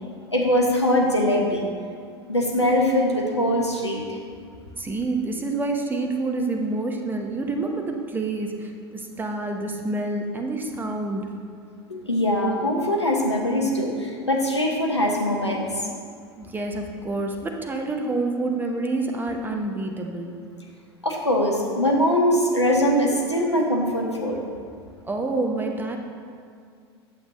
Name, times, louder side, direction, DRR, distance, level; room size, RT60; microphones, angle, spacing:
voice 1, 0.3-1.6 2.3-4.2 11.9-15.8 21.0-24.4, equal, 90° left, -1 dB, 1.0 m, -22 dB
voice 2, 4.8-11.3 16.4-20.4 25.1-26.0, right 2 dB, 15° right, 3 dB, 0.8 m, -28 dB
8.8 x 7.0 x 3.1 m, 2.2 s
figure-of-eight pair, 80°, 14 cm